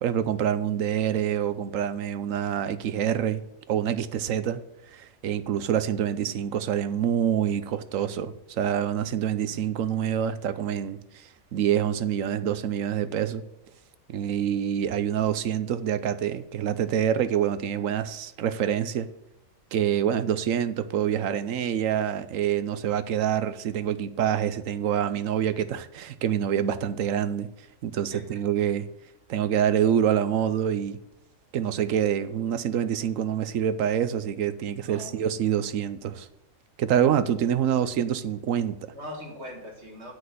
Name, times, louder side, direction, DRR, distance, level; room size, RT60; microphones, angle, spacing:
voice 1, 0.0-3.4 3.7-4.6 4.9-13.4 14.1-19.1 19.7-27.5 27.8-28.9 29.3-31.0 31.5-36.3 36.8-38.9, right 9 dB, 75° right, 1.1 m, -26 dB
voice 2, 34.8-35.1 38.9-40.1, left 1 dB, 55° right, 2.5 m, -41 dB
8.1 x 6.0 x 7.8 m
omnidirectional pair, 1.4 m